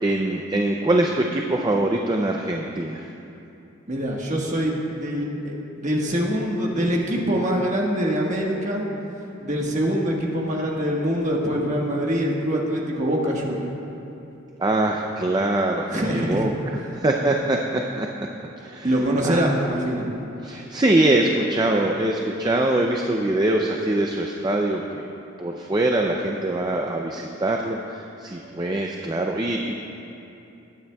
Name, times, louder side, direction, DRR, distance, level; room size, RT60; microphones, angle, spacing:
voice 1, 0.0-3.1 14.6-16.5 16.9-18.3 18.6-18.9 19.2-19.5 20.4-25.0 25.4-29.7, right 1 dB, 20° right, 1 dB, 0.4 m, -23 dB
voice 2, 3.9-8.8 9.4-13.7 15.9-16.5 18.8-20.1, equal, 35° right, -2 dB, 1.4 m, -24 dB
20.0 x 9.5 x 2.3 m, 2.8 s
head